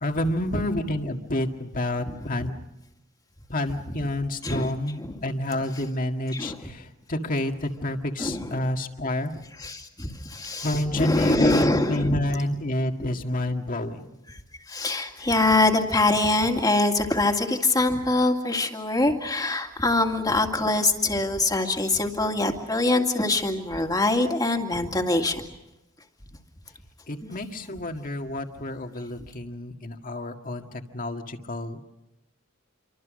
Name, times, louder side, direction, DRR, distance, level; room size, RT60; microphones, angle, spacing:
voice 1, 0.0-2.5 3.5-9.3 10.6-14.0 27.1-31.8, left 1 dB, 40° left, 5 dB, 1.9 m, -29 dB
voice 2, 2.1-2.5 4.4-4.7 5.0-5.3 6.3-6.7 8.2-8.6 9.6-12.2 14.7-25.4 27.2-27.3, left 2 dB, 20° left, 3 dB, 2.3 m, -24 dB
27.5 x 24.5 x 6.4 m, 0.92 s
head